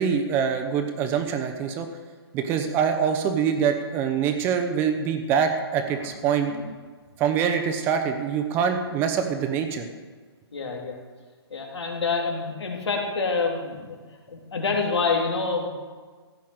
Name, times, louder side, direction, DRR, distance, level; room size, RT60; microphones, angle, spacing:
voice 1, 0.0-1.9 2.3-6.5 7.2-9.9, right 7 dB, 15° right, 7 dB, 0.9 m, -24 dB
voice 2, 10.5-11.0 11.5-14.0 14.3-15.7, left 4 dB, 85° left, 0 dB, 3.0 m, -27 dB
15.5 x 5.7 x 7.9 m, 1.5 s
hypercardioid pair, 165°, 14 cm